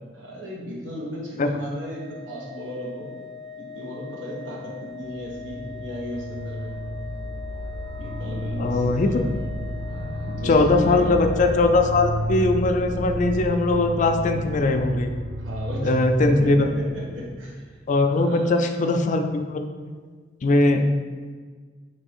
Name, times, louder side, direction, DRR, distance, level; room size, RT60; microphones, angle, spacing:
voice 1, 0.1-3.1 3.6-6.7 8.0-9.3 9.9-11.2 15.4-15.9 16.4-17.6 18.1-18.6, equal, 90° right, -3 dB, 1.0 m, -36 dB
Organ, 1.8-12.5, left 5 dB, 40° right, 0.6 m, -41 dB
sound 1, 4.9-17.7, equal, 70° right, 0.8 m, -32 dB
voice 2, 8.6-9.1 10.4-15.1 15.8-16.7 17.9-19.7 20.4-20.9, left 2 dB, 40° left, 6 dB, 0.3 m, -20 dB
3.5 x 3.2 x 4.2 m, 1.5 s
head